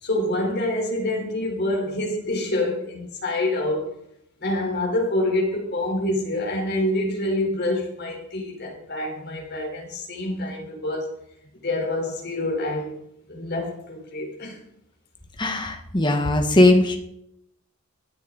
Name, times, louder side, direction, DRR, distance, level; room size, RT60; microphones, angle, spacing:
voice 1, 0.0-3.9 4.4-11.1 11.6-13.0 13.3-14.6, left 1 dB, 50° left, 4.0 m, -26 dB
voice 2, 15.4-17.0, left 1 dB, 20° left, 1.3 m, -19 dB
16.0 x 9.5 x 4.0 m
head